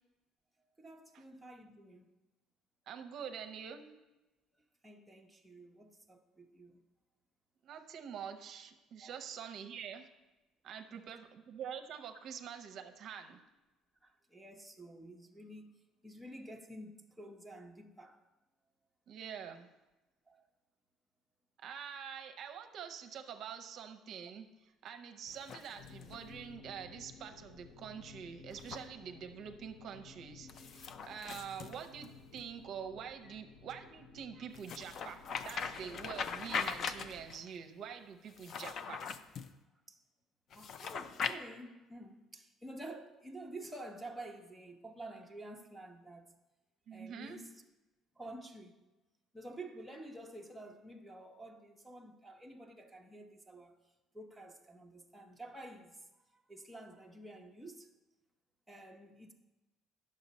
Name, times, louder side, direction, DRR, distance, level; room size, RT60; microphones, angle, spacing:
voice 1, 0.8-2.1 4.8-6.8 9.0-9.2 10.7-11.0 14.0-18.2 20.3-20.4 33.2-33.3 39.9-40.0 40.5-46.3 46.9-47.5 48.2-48.8 49.3-53.8 54.1-56.0 56.3-57.9 58.7-59.3, right 1 dB, ahead, 0.7 m, -50 dB
voice 2, 2.9-3.9 7.6-10.1 10.6-13.4 19.1-19.7 21.6-39.1 46.9-47.4, right 7 dB, 55° right, 0.6 m, -46 dB
sound 1, 25.3-26.3 28.5-28.8 30.5-32.4 34.5-37.4 38.3-39.5 40.5-41.3, left 6 dB, 45° left, 0.4 m, -41 dB
sound 2, 25.8-37.3, left 4 dB, 85° left, 0.8 m, -56 dB
9.5 x 6.6 x 4.1 m
cardioid pair, 135°, 0 cm